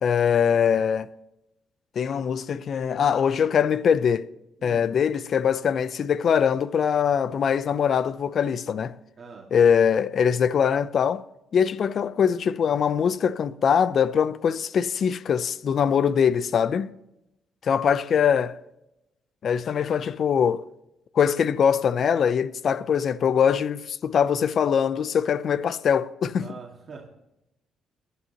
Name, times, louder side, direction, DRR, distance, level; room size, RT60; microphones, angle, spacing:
voice 1, 0.0-1.1 2.0-4.3 4.6-8.9 9.5-11.2 11.5-16.9 17.6-18.6 19.4-20.6 21.1-26.5, left 7 dB, 55° left, 0.6 m, -22 dB
voice 2, 9.2-9.5 15.6-16.0 26.4-27.1, right 5 dB, 45° right, 2.3 m, -44 dB
21.0 x 11.5 x 3.0 m
cardioid pair, 90°, 0 cm